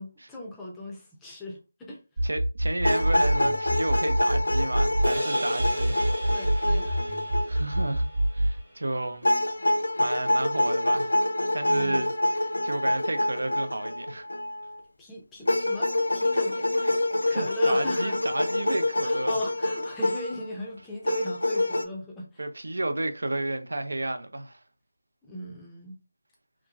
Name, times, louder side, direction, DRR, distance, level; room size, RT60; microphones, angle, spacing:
voice 1, 0.0-2.3 6.3-7.0 11.6-12.1 15.0-16.8 17.3-18.2 19.0-22.4 25.2-26.0, left 1 dB, 5° left, 0.5 m, -37 dB
sound 1, 2.2-5.2 5.6-8.6, right 1 dB, 60° right, 1.0 m, -26 dB
voice 2, 2.2-6.1 7.5-8.1 8.3-9.3 10.0-11.1 11.5-14.3 16.3-16.4 16.8-16.9 17.3-19.4 22.4-24.6, right 2 dB, 75° right, 0.5 m, -32 dB
sound 2, 2.8-7.9 9.2-14.7 15.5-20.4 21.0-21.8, left 1 dB, 80° left, 0.4 m, -26 dB
sound 3, 5.0-9.6, right 1 dB, 40° right, 1.2 m, -38 dB
2.9 x 2.4 x 2.3 m
figure-of-eight pair, 165°, 0 cm